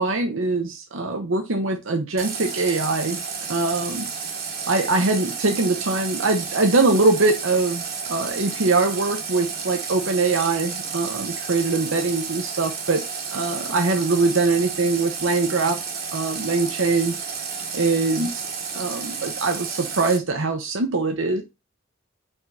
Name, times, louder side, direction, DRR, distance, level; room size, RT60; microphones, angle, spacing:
voice 1, 0.0-3.2 3.5-4.1 4.7-15.8 16.1-17.2 17.7-18.5 18.7-21.4, right 3 dB, 70° right, 1.0 m, -22 dB
Water tap faucet, 2.2-20.2, right 5 dB, 50° right, 1.4 m, -32 dB
5.4 x 3.6 x 5.5 m
head